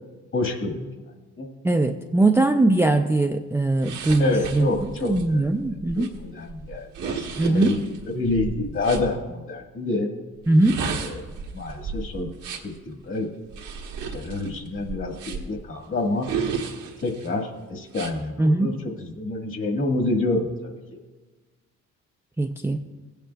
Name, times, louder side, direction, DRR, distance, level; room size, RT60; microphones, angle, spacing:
voice 1, 0.3-0.9 1.4-1.5 2.2-2.3 4.2-5.4 6.1-7.8 8.1-10.1 11.0-11.2 11.5-12.3 12.6-13.3 14.1-16.3 17.0-18.7 19.0-20.7, left 2 dB, 45° left, 3 dB, 1.7 m, -27 dB
voice 2, 1.6-4.7 5.0-6.1 7.4-7.9 10.5-10.9 18.4-18.7 22.4-22.8, right 2 dB, 10° right, 4 dB, 0.4 m, -21 dB
sound 1, 3.8-9.1 10.4-12.8 13.5-15.6 16.2-17.3 17.9-18.1, right 5 dB, 85° right, 1.4 m, -33 dB
16.0 x 9.0 x 2.3 m, 1.3 s
cardioid pair, 90°, 30 cm